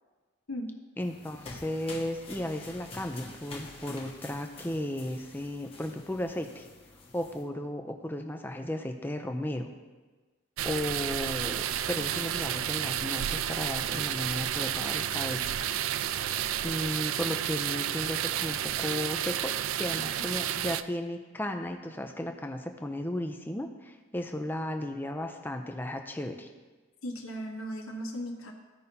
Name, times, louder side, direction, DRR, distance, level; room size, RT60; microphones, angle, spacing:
sound 1, 1.0-7.4, left 2 dB, 30° left, 1.1 m, -47 dB
voice 1, 1.0-6.7 7.1-9.7 10.6-15.5 16.6-19.5 19.8-26.5, left 1 dB, 10° left, 5 dB, 0.5 m, -35 dB
sound 2, 10.6-20.8, right 10 dB, 70° right, 0.3 m, -31 dB
voice 2, 27.0-28.5, equal, 80° left, 1 dB, 1.2 m, -37 dB
14.5 x 5.4 x 2.8 m, 1.3 s
head